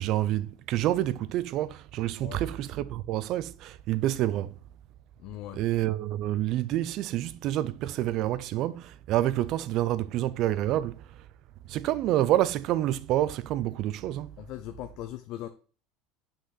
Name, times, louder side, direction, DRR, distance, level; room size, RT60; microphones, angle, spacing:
voice 1, 0.0-4.5 5.5-11.0 11.7-14.4, right 13 dB, 50° right, 0.5 m, -28 dB
voice 2, 5.2-5.6 14.4-15.5, left 13 dB, 55° left, 0.6 m, -39 dB
5.8 x 5.6 x 4.1 m
cardioid pair, 145°, 0 cm